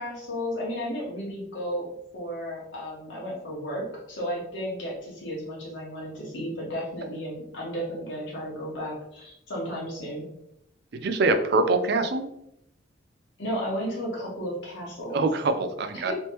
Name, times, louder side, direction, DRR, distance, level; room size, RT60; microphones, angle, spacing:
voice 1, 0.0-1.9 2.1-10.2 13.4-15.3 15.9-16.1, equal, 70° left, -4 dB, 1.3 m, -33 dB
voice 2, 10.9-12.3 15.1-16.1, right 3 dB, 55° right, 8 dB, 0.4 m, -24 dB
3.2 x 3.0 x 3.0 m, 0.78 s
head